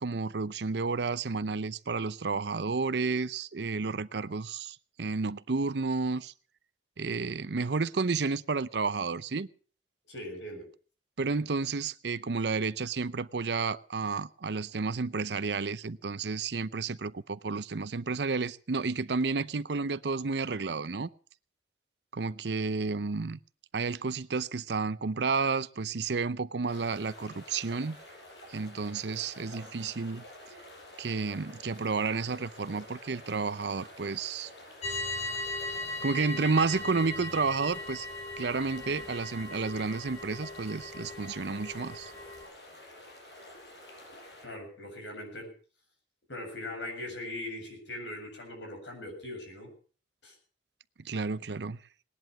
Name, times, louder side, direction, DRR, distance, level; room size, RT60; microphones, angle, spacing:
voice 1, 0.0-6.3 7.0-9.5 11.2-21.1 22.1-23.4 23.7-28.0 28.5-30.2 31.0-34.5 36.0-38.1 38.4-42.1 51.0-51.8, right 4 dB, 70° right, 0.7 m, -31 dB
voice 2, 10.1-10.7 44.4-45.5 46.3-49.7 50.2-50.4, left 1 dB, 85° left, 7.6 m, -40 dB
sound 1, 26.7-44.5, left 1 dB, 70° left, 6.4 m, -50 dB
sound 2, 34.8-42.5, left 2 dB, 40° left, 4.0 m, -38 dB
19.5 x 11.0 x 6.0 m
head